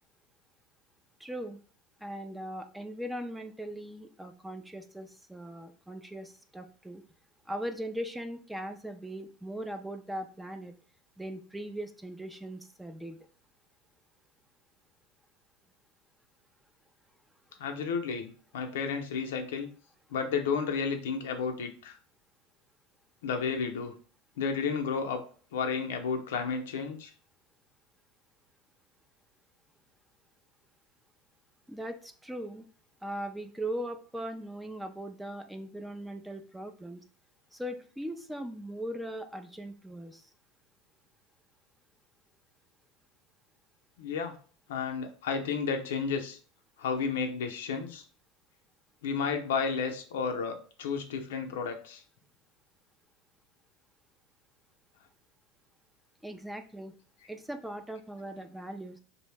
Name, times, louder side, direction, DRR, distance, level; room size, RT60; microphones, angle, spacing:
voice 1, 1.2-1.6 2.0-7.0 7.5-10.7 11.2-13.2 31.7-32.7 33.0-37.0 37.5-40.3 56.2-56.9 57.3-59.0, right 1 dB, 5° right, 7 dB, 0.3 m, -39 dB
voice 2, 17.6-19.7 20.1-22.0 23.2-23.9 24.4-25.2 25.5-27.1 44.0-44.3 44.7-46.4 46.8-48.0 49.0-52.0, left 5 dB, 90° left, 5 dB, 0.5 m, -32 dB
2.6 x 2.0 x 3.2 m, 0.42 s
supercardioid pair, 115°, 0 cm